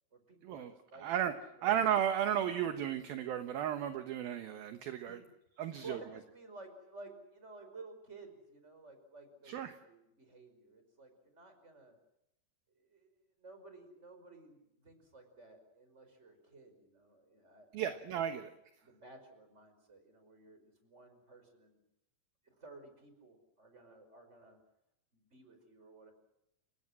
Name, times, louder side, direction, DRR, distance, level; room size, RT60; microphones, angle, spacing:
voice 1, 0.1-1.7 5.0-5.3 5.8-11.9 12.7-17.9 18.3-18.5 18.8-21.8 22.4-24.6 25.1-26.1, right 2 dB, 15° right, 7 dB, 5.0 m, -55 dB
voice 2, 1.0-1.3 1.6-5.2 5.6-6.0 9.4-9.7 17.7-18.5, right 10 dB, 65° right, 9 dB, 2.6 m, -34 dB
30.0 x 17.5 x 7.5 m, 0.84 s
omnidirectional pair, 5.3 m